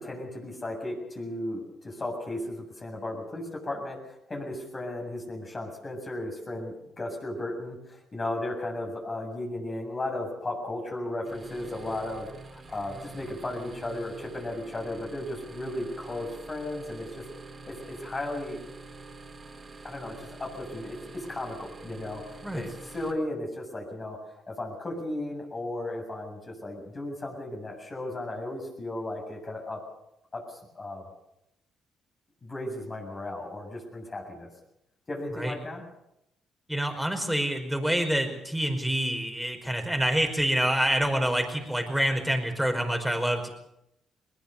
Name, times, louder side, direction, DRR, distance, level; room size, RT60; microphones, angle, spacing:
voice 1, 0.0-17.2 17.7-18.6 19.8-29.8 30.3-31.1 32.4-34.5 35.1-35.8, left 1 dB, 30° left, 1 dB, 7.4 m, -35 dB
sound 1, 11.2-23.1, right 3 dB, 35° right, 4.5 m, -46 dB
voice 2, 36.7-43.5, right 1 dB, ahead, 4 dB, 5.2 m, -27 dB
21.0 x 20.5 x 6.9 m, 0.83 s
cardioid pair, 90°, 0 cm